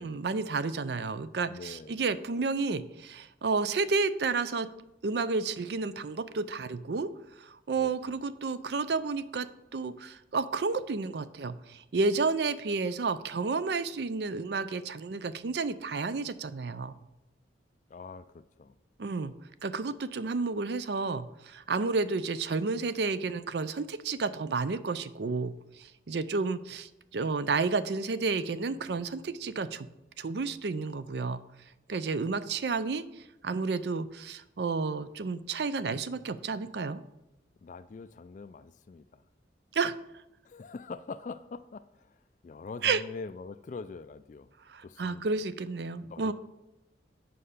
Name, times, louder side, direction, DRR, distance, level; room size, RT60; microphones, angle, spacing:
voice 1, 0.0-4.7 5.0-7.1 7.4-16.9 19.0-19.3 19.6-25.5 26.1-29.9 30.2-31.4 31.9-33.0 33.4-37.0 39.7-39.9 42.8-43.0 44.7-46.3, right 4 dB, 65° right, 14 dB, 0.5 m, -31 dB
voice 2, 1.5-2.0 7.8-7.9 17.9-18.7 37.6-39.2 40.4-42.1 42.4-44.5 44.8-45.4 46.0-46.3, left 4 dB, 45° left, 13 dB, 0.3 m, -44 dB
7.7 x 5.5 x 6.6 m, 0.92 s
head